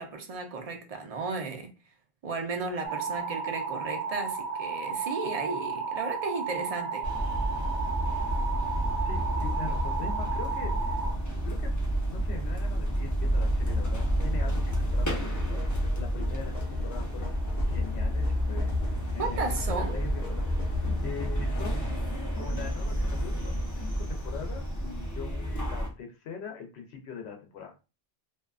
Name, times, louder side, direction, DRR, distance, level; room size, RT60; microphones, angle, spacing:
voice 1, 0.0-1.7 2.2-7.0 19.2-20.0, right 3 dB, 50° right, 0.5 m, -34 dB
sound 1, 2.8-11.1, right 5 dB, 80° right, 1.0 m, -33 dB
sound 2, 7.0-25.9, equal, 25° left, 0.4 m, -30 dB
voice 2, 9.0-11.0 11.4-11.8 12.1-18.8 19.1-21.8 22.4-27.7, left 6 dB, 85° left, 0.9 m, -42 dB
sound 3, 13.7-22.1, left 6 dB, 50° left, 0.8 m, -37 dB
2.5 x 2.2 x 2.3 m
omnidirectional pair, 1.1 m